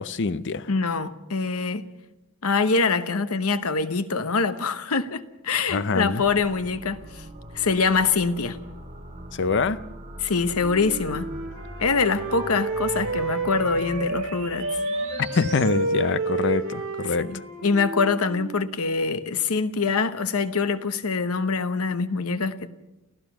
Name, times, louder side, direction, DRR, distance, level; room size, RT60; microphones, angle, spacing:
voice 1, 0.0-0.7 5.7-6.2 9.3-9.8 15.2-17.3, left 4 dB, 55° left, 0.7 m, -25 dB
voice 2, 0.7-1.8 2.4-7.2 7.5-8.6 10.2-11.3 11.8-14.7 17.2-22.7, left 4 dB, 85° left, 1.0 m, -24 dB
sound 1, 6.2-15.7, right 1 dB, 30° right, 3.5 m, -41 dB
Wind instrument woodwind instrument, 10.5-14.3 14.6-18.7, right 2 dB, 60° right, 8.0 m, -30 dB
29.5 x 14.5 x 6.1 m
head